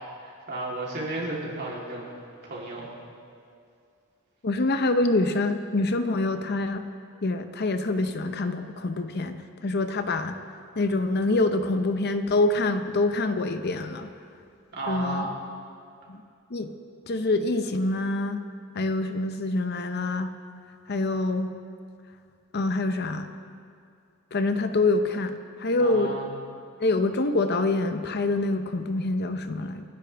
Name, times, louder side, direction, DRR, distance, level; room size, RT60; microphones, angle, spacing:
voice 1, 0.2-2.1 2.4-2.9 14.7-15.3 25.8-26.3, right 2 dB, 50° right, -4 dB, 3.3 m, -33 dB
voice 2, 4.4-6.8 7.2-10.3 10.8-14.1 14.9-15.3 16.1-16.2 16.5-16.7 17.1-18.4 18.7-20.3 20.9-21.5 22.5-23.3 24.3-26.1 26.8-29.8, left 2 dB, 50° left, 8 dB, 0.7 m, -25 dB
28.0 x 10.0 x 3.4 m, 2.4 s
head